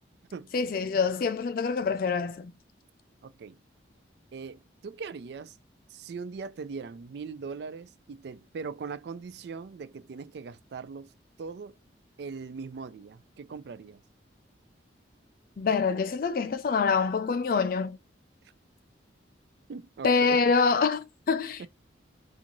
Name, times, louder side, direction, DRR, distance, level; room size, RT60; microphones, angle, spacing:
voice 1, 0.5-2.5 15.6-18.0 20.0-21.7, left 5 dB, 50° left, 0.3 m, -26 dB
voice 2, 3.2-3.6 4.3-5.6 5.9-11.1 11.4-11.7 12.2-14.0 19.7-20.4 21.6-21.7, right 5 dB, 60° right, 0.3 m, -40 dB
3.8 x 2.4 x 2.8 m
head